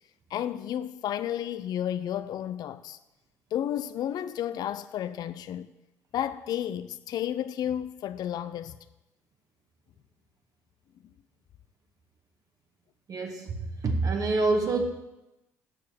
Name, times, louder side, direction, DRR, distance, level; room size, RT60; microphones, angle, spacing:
voice 1, 0.3-3.0 3.5-5.7 6.1-8.8, left 10 dB, 55° left, 0.5 m, -32 dB
voice 2, 13.1-14.8, right 3 dB, 45° right, 1.8 m, -27 dB
8.4 x 7.4 x 6.7 m
hypercardioid pair, 55°, 8 cm